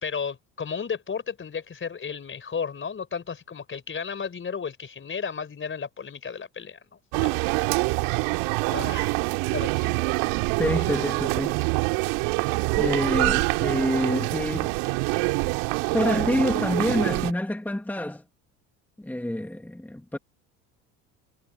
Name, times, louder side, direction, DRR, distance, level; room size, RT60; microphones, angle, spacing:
voice 1, 0.0-6.8 7.2-7.5 8.7-9.1 9.5-10.0 10.6-10.9, left 6 dB, 30° left, 4.6 m, -33 dB
sound 1, 7.1-17.3, right 30 dB, 70° right, 3.3 m, -25 dB
voice 2, 10.6-11.6 12.8-14.8 15.9-18.2 19.0-20.2, left 1 dB, 5° left, 2.4 m, -27 dB
hypercardioid pair, 70°, 40 cm